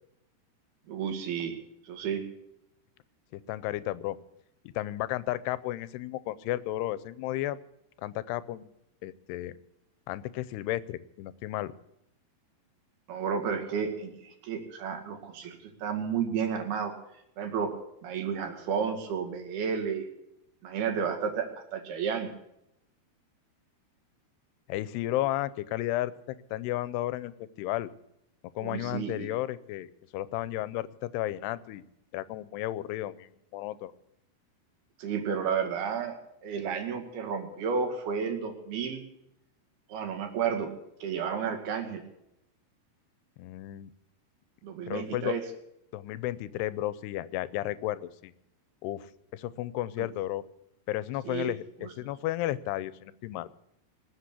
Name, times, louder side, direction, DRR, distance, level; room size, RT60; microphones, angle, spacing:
voice 1, 0.9-1.6 1.8-2.2 13.1-16.9 17.4-17.7 18.0-20.1 20.6-21.5 21.7-22.3 28.6-29.3 35.0-36.2 36.4-39.0 39.9-40.7 41.0-42.0 44.6-45.4 51.2-51.5 51.8-51.9, right 6 dB, 70° right, 4 dB, 4.0 m, -32 dB
voice 2, 3.3-4.2 4.8-7.6 8.0-8.7 9.0-9.5 10.1-11.7 24.7-27.9 28.6-29.9 30.1-31.8 32.1-33.9 43.4-43.9 44.9-45.3 45.9-48.3 48.8-50.4 50.9-53.5, left 15 dB, 90° left, 16 dB, 2.8 m, -33 dB
20.0 x 8.0 x 8.3 m, 0.82 s
omnidirectional pair, 4.6 m